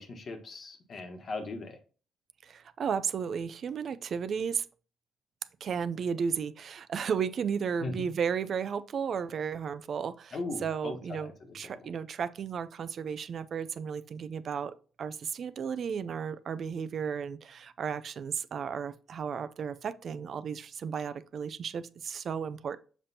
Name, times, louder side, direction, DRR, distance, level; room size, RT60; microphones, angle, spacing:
voice 1, 0.0-1.8 7.8-8.1 10.3-11.9, left 3 dB, 50° left, 1.3 m, -39 dB
voice 2, 2.4-4.7 5.6-22.8, right 6 dB, 55° right, 0.5 m, -34 dB
7.3 x 5.1 x 2.8 m
cardioid pair, 90°, 0 cm